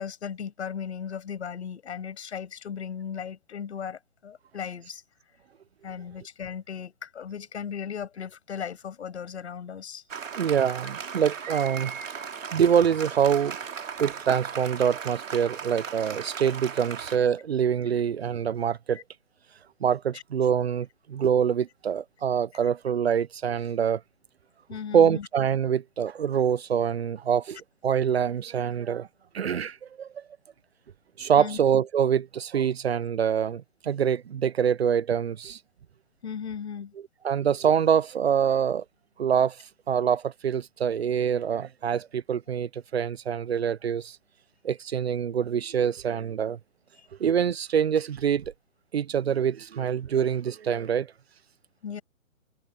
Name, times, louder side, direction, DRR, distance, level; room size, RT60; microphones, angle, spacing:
voice 1, 0.0-5.0 5.8-10.0 20.1-20.2 24.7-25.3 31.4-31.6 36.2-36.9 51.8-52.0, left 7 dB, 55° left, 7.0 m, -36 dB
Applause, 10.1-17.2, right 6 dB, 70° right, 3.0 m, -37 dB
voice 2, 10.3-11.9 12.5-13.6 14.0-19.0 19.8-24.0 24.9-29.1 29.3-30.2 31.2-35.6 37.2-38.8 39.2-39.6 39.9-44.2 44.6-46.6 47.2-48.4 48.9-51.1, right 8 dB, 50° right, 0.7 m, -25 dB
hypercardioid pair, 165°, 40 cm